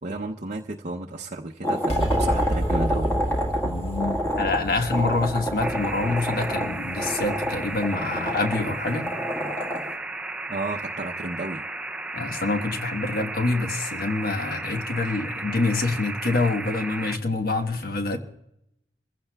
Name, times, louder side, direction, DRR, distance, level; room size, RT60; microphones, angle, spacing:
voice 1, 0.0-3.1 10.5-11.6, right 2 dB, 40° right, 0 dB, 0.6 m, -32 dB
sound 1, 1.6-9.9, equal, 15° left, 1.7 m, -29 dB
sound 2, 1.9-8.6, equal, 35° left, 2.0 m, -30 dB
voice 2, 3.6-9.1 12.1-18.2, left 3 dB, 55° left, 5 dB, 1.3 m, -26 dB
sound 3, 5.6-17.2, right 2 dB, 5° right, 0.4 m, -34 dB
28.5 x 15.5 x 2.3 m, 0.83 s
head